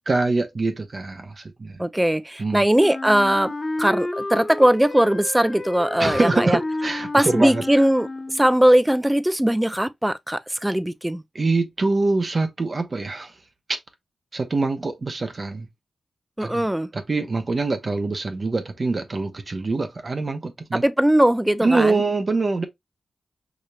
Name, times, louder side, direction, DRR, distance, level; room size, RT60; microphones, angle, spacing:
voice 1, 0.0-1.8 2.4-2.6 6.0-7.6 11.3-13.3 13.7-13.8 14.3-15.7 16.4-16.7 16.9-20.8 21.6-22.6, right 3 dB, 50° right, 0.7 m, -24 dB
voice 2, 1.8-3.5 3.8-6.6 7.1-11.2 16.4-16.9 20.7-22.0, right 1 dB, 10° right, 0.4 m, -20 dB
Wind instrument woodwind instrument, 2.8-8.6, left 2 dB, 40° left, 1.0 m, -31 dB
4.9 x 2.7 x 2.2 m
cardioid pair, 50°, 0 cm